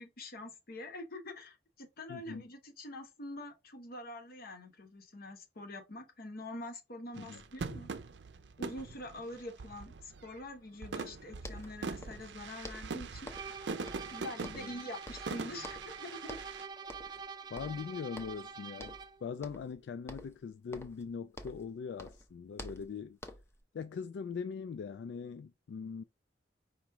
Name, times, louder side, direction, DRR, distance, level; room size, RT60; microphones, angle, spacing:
voice 1, 0.0-7.9 8.6-13.3 14.1-16.4 16.9-17.0, left 1 dB, 60° left, 1.0 m, -45 dB
voice 2, 2.1-2.4 7.2-7.4 14.4-14.7 17.1-17.2 17.5-18.9 19.2-23.2 23.7-26.0, left 6 dB, 80° left, 0.3 m, -41 dB
sound 1, 7.1-10.4 10.8-16.7, right 4 dB, 85° right, 0.5 m, -43 dB
sound 2, 11.1-11.2 11.4-12.3 12.6-13.6 13.9-14.8 15.1-16.0 16.3-16.6 16.9-17.3 17.6-18.5 18.8-19.1 19.4-19.8 20.1-21.7 22.0-23.6, left 1 dB, 15° left, 0.7 m, -48 dB
sound 3, 13.3-19.2, right 6 dB, 25° right, 0.4 m, -46 dB
5.0 x 3.0 x 3.4 m
head